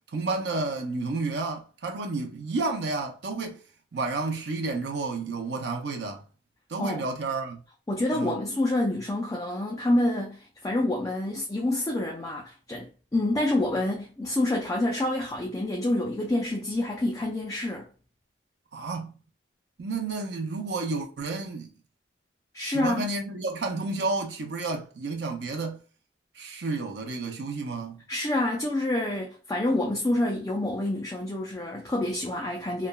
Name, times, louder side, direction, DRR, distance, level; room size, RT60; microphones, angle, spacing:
voice 1, 0.1-3.6 3.9-6.2 6.7-7.6 8.1-8.4 18.7-19.1 19.8-21.7 22.6-25.8 26.4-28.0, right 3 dB, 70° right, 0.5 m, -31 dB
voice 2, 7.9-17.9 22.5-23.1 28.1-32.9, left 1 dB, 20° left, 0.4 m, -27 dB
3.1 x 2.2 x 2.2 m
head